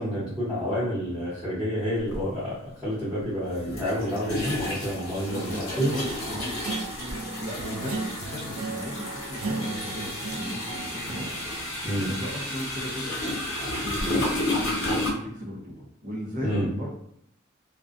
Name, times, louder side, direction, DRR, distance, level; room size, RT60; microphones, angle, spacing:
voice 1, 0.0-5.9 11.8-12.1 16.4-16.7, equal, 10° right, -13 dB, 0.9 m, -29 dB
sound 1, 2.1-2.2 3.6-15.1, left 1 dB, 80° left, 0.9 m, -32 dB
voice 2, 5.2-6.6 7.4-11.3 11.6-13.3 13.7-16.9, equal, 40° right, -6 dB, 0.6 m, -36 dB
Guitar, 6.6-12.4, right 3 dB, 85° right, 0.4 m, -36 dB
2.4 x 2.1 x 2.5 m, 0.73 s
head